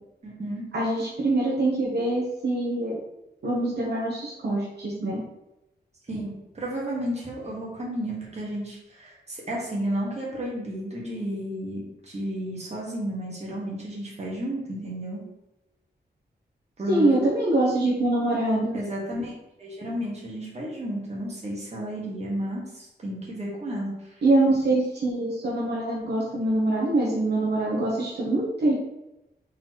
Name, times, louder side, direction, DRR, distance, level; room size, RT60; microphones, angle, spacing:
voice 1, 0.2-0.6 6.1-15.2 16.8-17.3 18.7-19.3 19.6-23.9, equal, 40° right, -3 dB, 1.5 m, -32 dB
voice 2, 0.7-3.0 3.4-5.2 16.9-18.8 24.2-28.7, right 2 dB, 70° right, -4 dB, 1.0 m, -24 dB
4.0 x 4.0 x 3.0 m, 0.93 s
wide cardioid pair, 105°, 18 cm